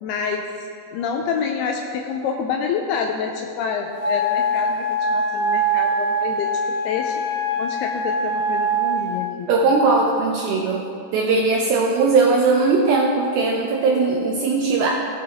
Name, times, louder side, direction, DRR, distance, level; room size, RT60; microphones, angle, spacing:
voice 1, 0.0-7.2 7.6-9.5, left 6 dB, 85° left, 2 dB, 2.3 m, -27 dB
Wind instrument woodwind instrument, 4.0-9.2, right 1 dB, 55° right, 0.5 m, -23 dB
voice 2, 9.5-10.9 11.1-14.9, right 3 dB, 80° right, -1 dB, 2.2 m, -19 dB
16.5 x 8.4 x 3.5 m, 2.6 s
omnidirectional pair, 5.2 m